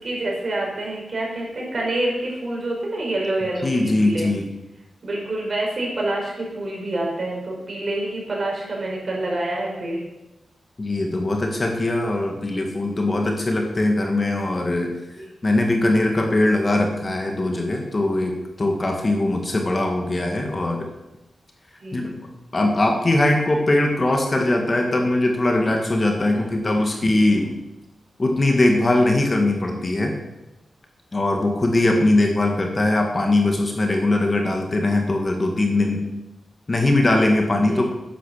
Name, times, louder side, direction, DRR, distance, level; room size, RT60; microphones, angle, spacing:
voice 1, 0.0-4.3 5.0-10.0 15.2-15.3 21.8-22.1 37.5-37.8, right 1 dB, 45° right, -2 dB, 5.2 m, -27 dB
voice 2, 3.6-4.4 10.8-14.9 15.4-20.8 21.9-22.2 22.5-27.5 28.2-30.2 31.1-36.0 36.7-37.8, left 2 dB, 30° left, 2 dB, 2.0 m, -21 dB
10.5 x 10.0 x 7.3 m, 0.96 s
wide cardioid pair, 120°, 0 cm